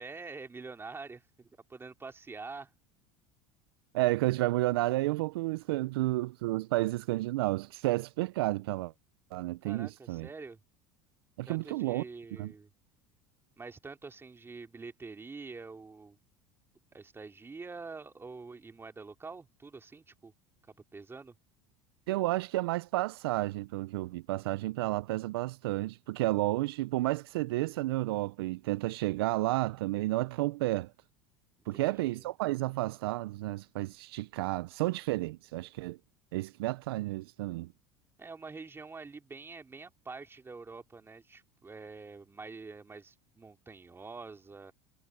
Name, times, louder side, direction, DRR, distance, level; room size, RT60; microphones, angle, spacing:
voice 1, 0.0-2.7 9.6-10.6 11.5-12.7 13.6-16.2 16.9-20.3 20.7-21.3 31.7-32.2 38.2-44.7, right 4 dB, 20° right, 3.0 m, -46 dB
voice 2, 3.9-8.9 9.3-10.3 11.4-12.0 12.4-12.5 22.1-30.9 31.7-36.0 36.3-37.7, right 18 dB, 80° right, 0.5 m, -31 dB
hypercardioid pair, 90°, 13 cm